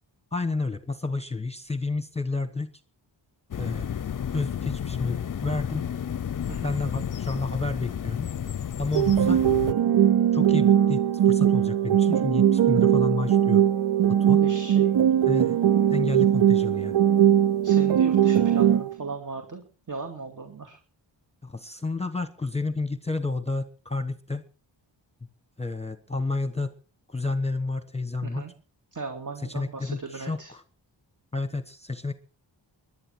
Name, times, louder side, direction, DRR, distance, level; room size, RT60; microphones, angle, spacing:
voice 1, 0.3-2.7 3.6-3.9 4.3-5.8 6.6-8.3 8.8-9.5 10.3-13.6 14.1-14.4 15.3-15.6 15.9-17.0 21.4-24.4 25.6-26.7 27.1-28.4 29.5-30.6 31.3-32.1, left 3 dB, 15° left, 11 dB, 1.1 m, -30 dB
sound 1, 3.5-9.7, left 8 dB, 45° left, 0.6 m, -32 dB
sound 2, 8.9-18.9, right 10 dB, 90° right, 0.9 m, -20 dB
voice 2, 14.4-15.0 17.6-20.8 28.2-28.5 28.9-30.5, right 4 dB, 45° right, 3 dB, 2.5 m, -37 dB
21.5 x 11.5 x 4.6 m, 0.38 s
wide cardioid pair, 100°, 45 cm